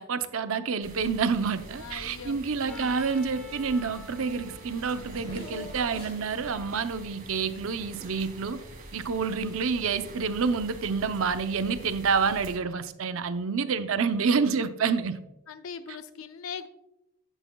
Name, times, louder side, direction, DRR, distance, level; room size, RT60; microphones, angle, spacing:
voice 1, 0.0-8.6 8.9-15.2, right 5 dB, 70° right, 11 dB, 0.6 m, -28 dB
sound 1, 0.8-12.6, right 1 dB, 40° right, 2.1 m, -46 dB
voice 2, 1.7-3.0 9.4-9.7 13.9-14.1 15.5-16.7, left 6 dB, 70° left, 10 dB, 0.5 m, -41 dB
Trumpet, 2.6-6.7, left 1 dB, 5° left, 0.9 m, -50 dB
Race car auto racing / Accelerating revving vroom, 4.3-8.3, equal, 25° left, 2.6 m, -47 dB
11.0 x 8.1 x 2.3 m, 0.91 s
head